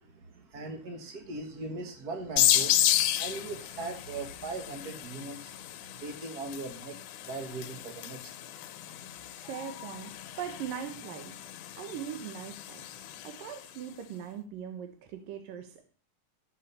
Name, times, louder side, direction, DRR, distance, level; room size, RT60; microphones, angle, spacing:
voice 1, 0.0-2.8 3.2-5.5 6.0-6.9 7.2-8.3, right 3 dB, 45° right, 4 dB, 1.3 m, -39 dB
sound 1, 2.4-13.7, left 12 dB, 75° left, 2.2 m, -32 dB
voice 2, 9.4-10.1 10.4-11.3 11.8-12.8 13.2-15.9, right 9 dB, 80° right, 7 dB, 2.8 m, -40 dB
13.5 x 7.4 x 6.7 m, 0.40 s
omnidirectional pair, 3.9 m